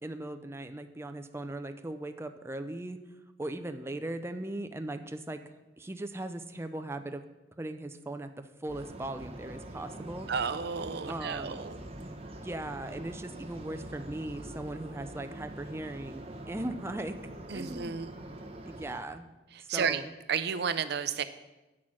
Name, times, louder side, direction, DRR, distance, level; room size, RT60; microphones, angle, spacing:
voice 1, 0.0-3.0 3.4-5.4 5.8-7.2 7.6-10.3 11.1-11.6 12.0-12.1 12.4-17.2 17.5-18.3 18.7-19.3 19.6-20.1, right 1 dB, 15° right, 8 dB, 0.5 m, -39 dB
sound 1, 8.7-19.0, right 1 dB, 35° right, 1.1 m, -44 dB
voice 2, 10.3-11.8 17.5-18.1 19.7-20.0 20.3-21.2, right 6 dB, 65° right, 12 dB, 0.5 m, -32 dB
8.7 x 6.0 x 6.2 m, 1.0 s
head